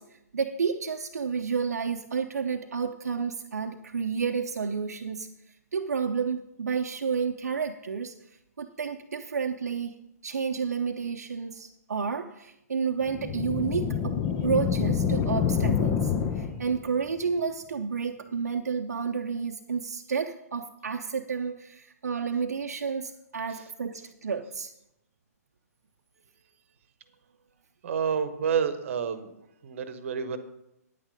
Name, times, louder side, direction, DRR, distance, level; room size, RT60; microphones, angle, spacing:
voice 1, 0.0-5.3 5.7-14.2 14.4-24.7, right 6 dB, 70° right, 3 dB, 0.7 m, -31 dB
sound 1, 13.1-16.9, left 7 dB, 25° left, 0.8 m, -27 dB
voice 2, 27.8-29.3 29.6-30.4, right 7 dB, 50° right, 11 dB, 1.1 m, -29 dB
9.4 x 9.0 x 5.2 m, 0.84 s
figure-of-eight pair, 125°, 9 cm